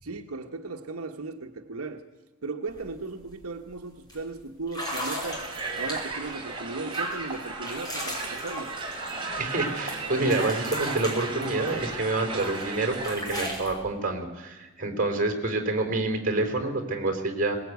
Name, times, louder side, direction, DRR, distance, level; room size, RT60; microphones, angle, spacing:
voice 1, 0.0-2.1 2.4-5.4 5.7-8.7, right 3 dB, 85° right, 4 dB, 1.3 m, -37 dB
sound 1, 2.7-2.8 3.2-3.5 4.1-4.2 4.7-6.3 6.9-9.6 9.9-12.0 12.4-13.7, equal, 20° left, 5.9 m, -37 dB
Crowd, 4.8-13.2, right 3 dB, 20° right, 4.3 m, -34 dB
voice 2, 9.4-17.6, right 2 dB, 40° right, 4 dB, 4.0 m, -27 dB
21.5 x 19.0 x 9.4 m, 1.2 s
head